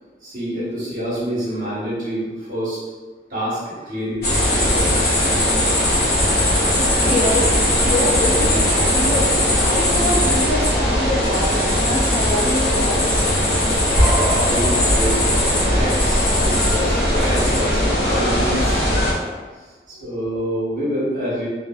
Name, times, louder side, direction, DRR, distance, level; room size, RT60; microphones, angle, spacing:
voice 1, 0.2-2.8 3.3-4.9 5.7-5.9 13.9-15.2 15.5-18.8 19.9-21.5, equal, 45° right, -8 dB, 1.0 m, -27 dB
sound 1, 4.2-19.1, left 1 dB, 55° left, 0.9 m, -18 dB
voice 2, 6.8-9.3 9.6-13.2, left 1 dB, 40° left, -11 dB, 0.6 m, -25 dB
3.1 x 2.1 x 2.2 m, 1.4 s
head